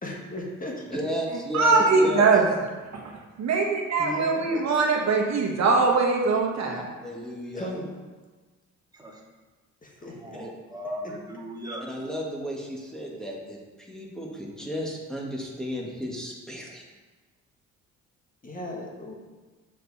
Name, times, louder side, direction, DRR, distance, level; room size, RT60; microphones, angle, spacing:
voice 1, 0.0-1.0 1.8-2.4 4.0-4.8 7.5-7.9 9.8-10.4 18.4-19.1, left 1 dB, 30° left, -1 dB, 1.5 m, -36 dB
voice 2, 0.9-2.3 6.7-7.7 10.3-10.5 11.8-16.8, equal, ahead, -2 dB, 1.7 m, -34 dB
voice 3, 1.5-2.4 2.9-3.1 3.4-6.9, right 4 dB, 60° right, 0 dB, 1.3 m, -22 dB
voice 4, 10.0-11.9, equal, 15° right, -3 dB, 1.8 m, -38 dB
7.5 x 5.3 x 4.1 m, 1.3 s
cardioid pair, 90°, 30 cm